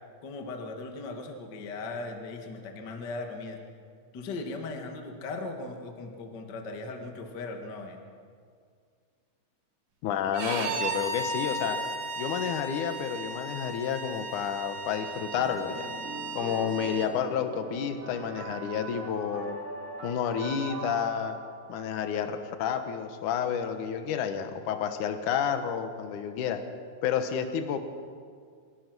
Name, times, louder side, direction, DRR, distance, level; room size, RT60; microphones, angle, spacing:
voice 1, 0.2-3.6 4.1-8.0, left 3 dB, 55° left, 3 dB, 1.2 m, -38 dB
voice 2, 10.0-11.8 12.2-15.9 16.4-19.6 20.0-21.4 21.7-26.7 27.0-27.8, left 8 dB, 75° left, 8 dB, 1.8 m, -30 dB
Bowed string instrument, 10.3-17.1, right 2 dB, 75° right, 4.6 m, -35 dB
sound 1, 15.3-22.4, right 2 dB, 45° right, 6.7 m, -41 dB
26.0 x 16.5 x 6.2 m, 2.1 s
omnidirectional pair, 5.4 m